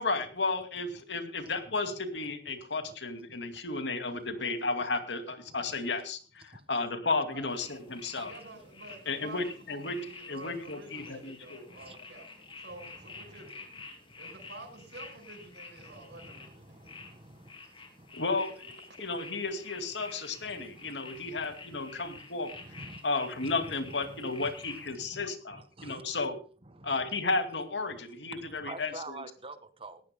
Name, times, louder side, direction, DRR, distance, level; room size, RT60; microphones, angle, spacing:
voice 1, 0.0-8.3 9.1-11.6 18.1-18.7 19.0-22.5 23.0-26.4 26.8-29.2, left 3 dB, 90° left, 2.4 m, -33 dB
voice 2, 5.5-5.9 6.5-6.6 8.1-8.3 10.9-11.1 11.7-12.0 13.0-13.4 15.8-17.6 18.0-18.2 20.4-22.2 22.5-23.0 23.4-24.5 24.8-26.2 26.7-27.1 27.9-28.0 28.3-30.0, right 2 dB, 35° right, 1.7 m, -49 dB
sound 1, 7.5-24.9, left 4 dB, 30° left, 3.3 m, -49 dB
voice 3, 8.2-9.4 9.7-13.7 14.2-16.9 18.9-19.0, right 2 dB, 85° right, 5.5 m, -49 dB
19.5 x 14.5 x 2.2 m
head